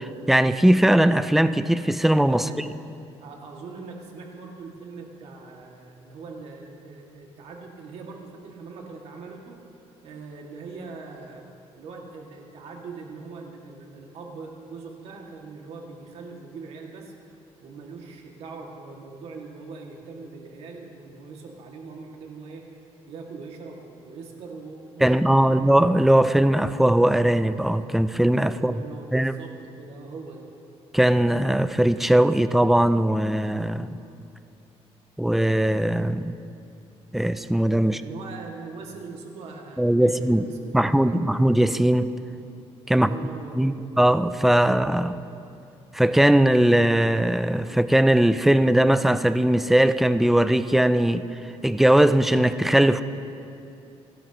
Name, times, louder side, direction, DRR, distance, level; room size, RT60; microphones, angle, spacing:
voice 1, 0.0-2.5 25.0-28.7 29.1-29.3 30.9-34.0 35.2-36.4 37.1-38.0 39.8-40.5 40.7-42.1 42.9-43.1 43.5-45.2 45.9-51.2 51.6-53.0, right 1 dB, ahead, 12 dB, 0.4 m, -20 dB
voice 2, 3.2-11.4 11.7-17.1 17.6-22.6 23.1-25.6 28.5-30.5 37.8-41.2 42.9-43.9 44.5-45.2, right 4 dB, 70° right, 0 dB, 2.2 m, -41 dB
29.0 x 12.5 x 3.0 m, 2.7 s
cardioid pair, 160°, 11 cm